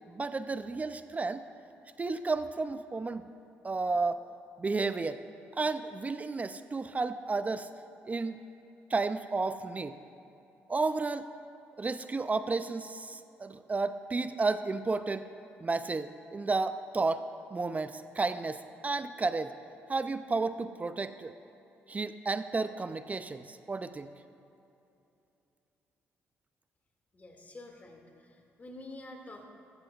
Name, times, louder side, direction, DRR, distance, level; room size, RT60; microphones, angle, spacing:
voice 1, 0.1-1.4 2.0-3.2 3.6-4.2 4.6-5.2 5.6-7.7 8.1-8.4 8.9-10.0 10.7-11.3 11.8-15.2 15.6-17.3 17.5-18.6 18.8-19.5 19.9-21.3 21.9-24.1, right 3 dB, 30° right, 11 dB, 0.5 m, -32 dB
voice 2, 27.1-29.4, left 2 dB, 30° left, 1 dB, 2.2 m, -48 dB
15.0 x 13.5 x 2.4 m, 2.8 s
supercardioid pair, 60°, 5 cm